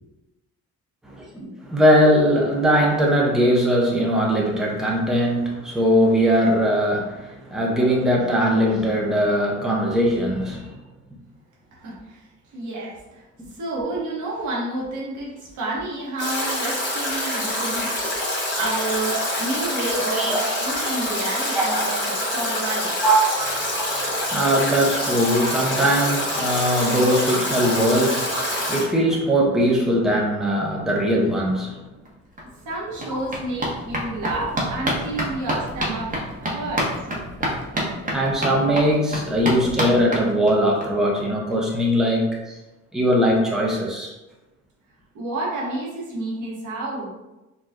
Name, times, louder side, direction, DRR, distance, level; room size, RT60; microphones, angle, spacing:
voice 1, 1.1-10.7 20.2-20.4 21.4-21.9 23.0-23.4 24.2-31.8 33.1-33.2 34.3-34.4 38.1-42.6 42.9-44.1, equal, ahead, -3 dB, 0.8 m, -20 dB
voice 2, 11.7-12.2 12.5-13.2 13.5-17.9 18.5-23.0 23.4-23.5 32.6-36.1 36.4-36.9 45.1-47.1, right 2 dB, 80° right, -4 dB, 1.2 m, -30 dB
Stream / Drip / Trickle dribble, 16.2-28.8, left 1 dB, 40° left, 1.5 m, -26 dB
sound 1, 32.1-32.2 32.4-40.9 41.2-41.3 41.5-41.6 41.9-42.0, equal, 25° right, 0.9 m, -28 dB
4.5 x 2.3 x 2.6 m, 1.0 s
cardioid pair, 90°, 30 cm